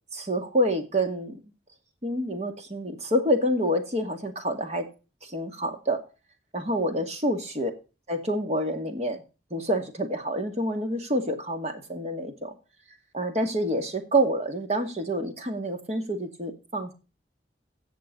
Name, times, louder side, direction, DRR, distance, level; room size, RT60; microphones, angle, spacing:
voice 1, 0.1-1.4 2.0-4.9 5.2-6.0 6.5-7.7 8.1-9.2 9.5-12.6 13.1-16.9, equal, 40° right, 6 dB, 2.3 m, -27 dB
16.5 x 6.6 x 3.9 m, 0.32 s
head